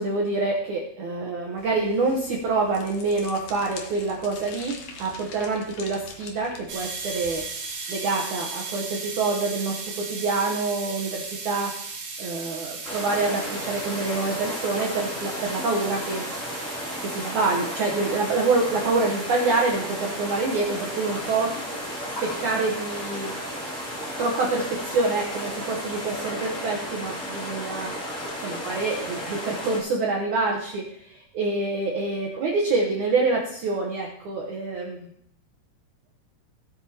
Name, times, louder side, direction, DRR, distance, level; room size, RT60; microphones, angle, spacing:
voice 1, 0.0-7.4 7.9-11.7 12.2-16.2 17.0-21.5 22.2-23.3 24.2-27.9 28.4-35.0, right 3 dB, 85° right, 0 dB, 1.7 m, -26 dB
sound 1, 1.6-7.5, left 4 dB, 85° left, 1.6 m, -44 dB
sound 2, 6.7-26.3, right 4 dB, 60° right, 3.0 m, -38 dB
sound 3, 12.8-29.8, equal, 20° left, 2.4 m, -34 dB
16.5 x 8.8 x 2.8 m, 0.68 s
omnidirectional pair, 5.1 m